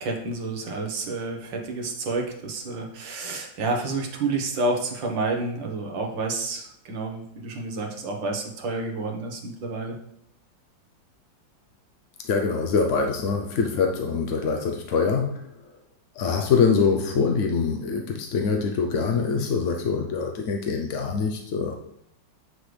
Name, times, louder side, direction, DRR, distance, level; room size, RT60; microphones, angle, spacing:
voice 1, 0.0-10.0, right 3 dB, 80° right, 2 dB, 1.9 m, -29 dB
voice 2, 12.2-15.7 16.1-21.8, left 5 dB, 60° left, 2 dB, 0.8 m, -24 dB
7.8 x 6.6 x 3.3 m, 0.74 s
omnidirectional pair, 2.0 m